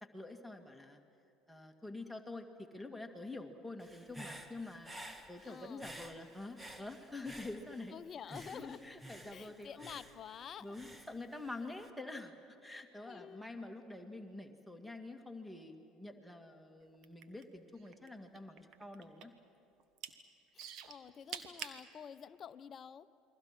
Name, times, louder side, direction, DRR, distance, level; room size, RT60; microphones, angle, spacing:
voice 1, 0.0-1.0 1.5-4.9 5.3-7.9 8.3-10.0 10.6-12.3 12.6-19.3, left 2 dB, ahead, 3 dB, 2.4 m, -47 dB
Human voice / Breathing, 3.8-8.0 8.3-11.9, right 1 dB, 15° right, 2.1 m, -52 dB
voice 2, 5.4-5.8 7.9-8.8 9.3-10.8 13.1-13.5 20.5-23.1, left 8 dB, 40° left, 13 dB, 0.8 m, -49 dB
sound 1, 16.9-18.1 18.4-19.4 19.8-20.1 20.6-21.8 22.5-22.6, right 9 dB, 55° right, 1.5 m, -45 dB
29.0 x 23.0 x 6.2 m, 2.7 s
hypercardioid pair, 70°, 0 cm